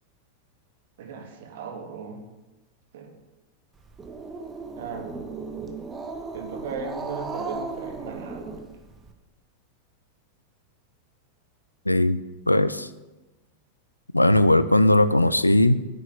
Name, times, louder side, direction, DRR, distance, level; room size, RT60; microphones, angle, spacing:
voice 1, 1.0-2.2 2.9-3.1 4.8-5.2 6.3-8.6, right 5 dB, 55° right, 5 dB, 2.3 m, -36 dB
Growling, 3.8-9.1, right 4 dB, 15° right, 1.5 m, -36 dB
voice 2, 11.9-12.2 12.5-12.9 14.1-15.7, left 1 dB, 85° left, 15 dB, 0.6 m, -18 dB
10.0 x 8.4 x 9.9 m, 1.1 s
figure-of-eight pair, 90°, 0 cm